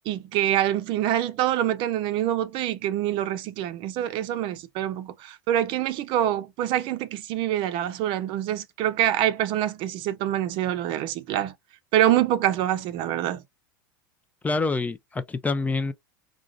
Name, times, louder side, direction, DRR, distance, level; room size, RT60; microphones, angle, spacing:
voice 1, 0.0-11.5 11.9-13.4, right 12 dB, 50° right, 0.6 m, -25 dB
voice 2, 14.4-15.9, left 3 dB, 15° left, 0.4 m, -26 dB
3.7 x 2.4 x 2.4 m
hypercardioid pair, 100°, 11 cm